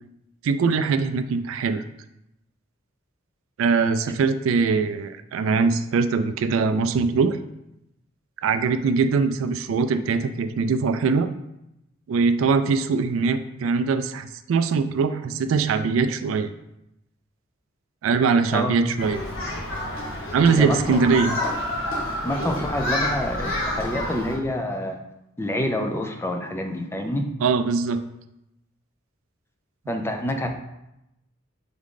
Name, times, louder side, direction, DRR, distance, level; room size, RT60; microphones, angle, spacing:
voice 1, 0.4-1.8 3.6-7.4 8.4-11.3 12.1-16.5 18.0-19.2 20.3-21.4 27.4-28.0, right 5 dB, 75° right, 10 dB, 0.3 m, -22 dB
Human group actions, 19.0-24.4, left 1 dB, 70° left, 1.1 m, -29 dB
voice 2, 20.5-21.0 21.4-21.6 22.2-25.0 25.4-27.3 29.9-30.5, left 1 dB, 10° left, 4 dB, 0.4 m, -27 dB
3.6 x 3.6 x 3.7 m, 0.86 s
head